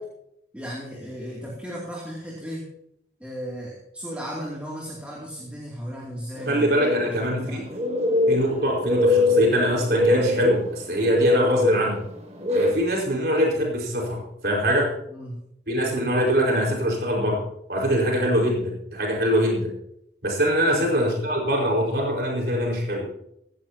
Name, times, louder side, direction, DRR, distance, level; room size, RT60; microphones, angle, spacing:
voice 1, 0.5-2.7 3.2-7.7 15.1-15.4 20.6-20.9, equal, 10° right, -4 dB, 2.7 m, -35 dB
sound 1, 6.4-12.7, left 2 dB, 35° right, 2.2 m, -23 dB
voice 2, 6.5-7.6 8.3-12.0 12.5-14.9 15.7-17.4 17.7-19.7 20.2-23.1, equal, 60° right, -1 dB, 4.8 m, -23 dB
16.5 x 16.0 x 2.9 m, 0.76 s
head